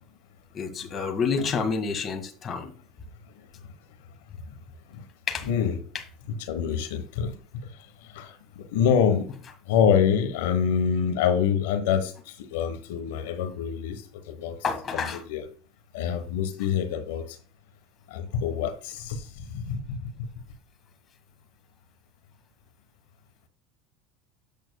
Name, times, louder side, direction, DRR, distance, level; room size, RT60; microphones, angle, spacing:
voice 1, 0.5-2.7 5.3-5.5 14.6-15.2, left 5 dB, 35° left, 1.8 m, -28 dB
voice 2, 5.4-5.8 6.4-7.3 8.0-9.4 9.7-14.0 14.3-14.6 14.9-15.4 15.9-17.4 18.1-20.1, left 7 dB, 85° left, 1.1 m, -26 dB
8.8 x 7.7 x 2.3 m
supercardioid pair, 120°, 0 cm